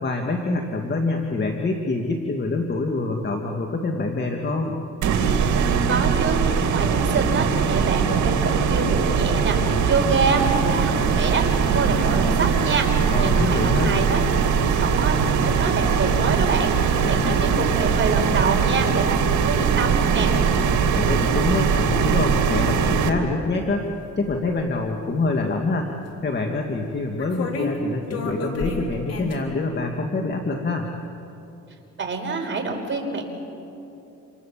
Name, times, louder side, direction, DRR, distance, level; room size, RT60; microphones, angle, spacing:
voice 1, 0.0-4.8 13.1-14.0 17.0-17.7 20.7-23.9 24.2-25.9 26.2-30.9, left 3 dB, 35° left, 3 dB, 2.2 m, -26 dB
sound 1, 5.0-23.1, right 6 dB, 70° right, 2.5 m, -21 dB
voice 2, 5.9-14.3 14.8-20.3 32.0-33.2, right 4 dB, 40° right, 2 dB, 5.2 m, -26 dB
sound 2, 23.3-23.5 23.8-24.8 26.1-26.2 27.2-27.8 28.1-29.4, left 4 dB, 55° left, 4.0 m, -31 dB
28.0 x 28.0 x 7.5 m, 2.9 s
cardioid pair, 90°, 30 cm